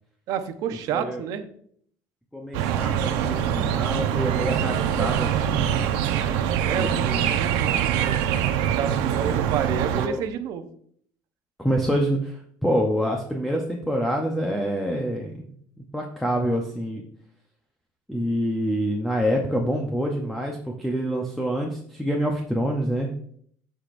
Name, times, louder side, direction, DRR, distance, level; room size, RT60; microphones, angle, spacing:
voice 1, 0.3-1.4 6.6-8.3 8.7-10.7, right 8 dB, 55° right, 9 dB, 0.8 m, -30 dB
voice 2, 2.3-5.9 6.8-7.4 9.2-9.4 9.9-10.2 11.6-15.4 15.9-17.0 18.1-23.1, equal, ahead, 0 dB, 0.8 m, -26 dB
sound 1, 2.5-10.1, right 9 dB, 85° right, 0.8 m, -24 dB
14.5 x 5.1 x 2.6 m, 0.63 s
cardioid pair, 155°, 7 cm